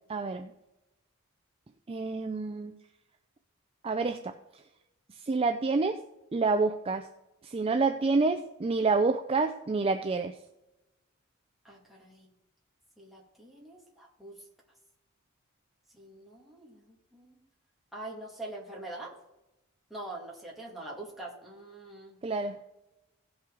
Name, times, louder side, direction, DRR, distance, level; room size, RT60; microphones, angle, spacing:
voice 1, 0.1-0.5 1.9-2.8 3.8-4.3 5.2-6.0 6.3-7.1 7.4-10.3 22.2-22.6, right 3 dB, 25° right, 7 dB, 0.4 m, -28 dB
voice 2, 11.6-12.3 13.0-14.4 15.9-17.4 17.9-19.1 19.9-22.2, right 2 dB, ahead, -4 dB, 2.1 m, -44 dB
16.0 x 5.6 x 3.8 m, 0.93 s
head